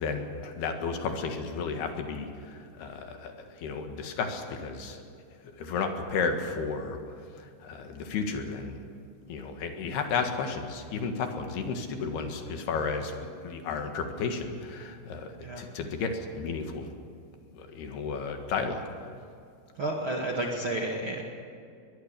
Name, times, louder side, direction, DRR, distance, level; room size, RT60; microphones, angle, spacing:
voice 1, 0.0-3.3 3.6-5.0 5.6-7.0 7.4-8.8 9.3-16.9 17.5-18.9, left 5 dB, 65° left, 5 dB, 3.6 m, -33 dB
voice 2, 19.8-21.2, right 1 dB, 45° right, -1 dB, 1.8 m, -31 dB
22.5 x 21.0 x 6.8 m, 2.4 s
omnidirectional pair, 5.1 m